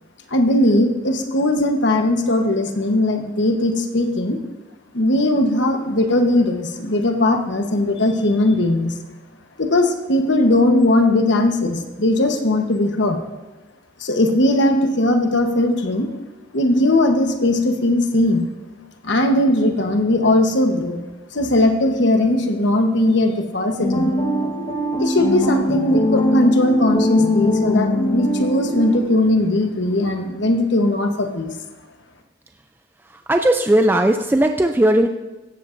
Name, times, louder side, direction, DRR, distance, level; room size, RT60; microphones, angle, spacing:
voice 1, 0.3-4.4 4.9-8.9 9.6-13.2 14.0-16.1 16.5-18.5 19.0-21.0 21.3-24.1 25.0-31.5, left 1 dB, 60° left, 5 dB, 1.1 m, -18 dB
sound 1, 23.8-29.0, left 1 dB, 30° left, 1.3 m, -21 dB
voice 2, 33.3-35.1, right 1 dB, 10° right, 5 dB, 0.3 m, -16 dB
16.0 x 13.0 x 2.6 m, 1.2 s
head